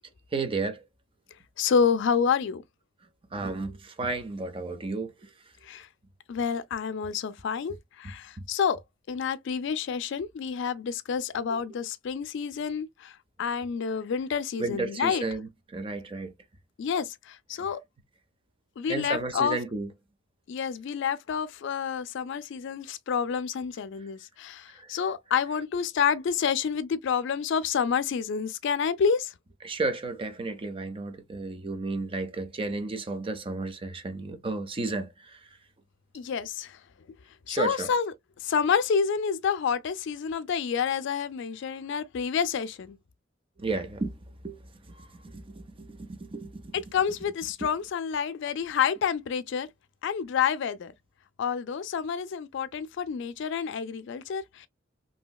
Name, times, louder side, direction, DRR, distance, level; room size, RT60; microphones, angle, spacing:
voice 1, 0.3-0.8 3.3-5.3 14.6-16.3 17.6-17.7 18.9-19.9 24.8-25.0 29.6-35.5 37.5-37.9 43.6-44.2 44.4-46.7, right 3 dB, 30° right, 0.5 m, -33 dB
voice 2, 1.6-2.6 5.6-5.9 6.3-8.8 9.1-15.2 16.8-17.8 18.8-19.6 20.5-29.3 36.1-36.8 37.5-38.1 38.4-43.0 46.9-49.7 50.0-50.9 51.4-54.7, left 6 dB, 65° left, 0.4 m, -28 dB
3.0 x 2.7 x 2.2 m
head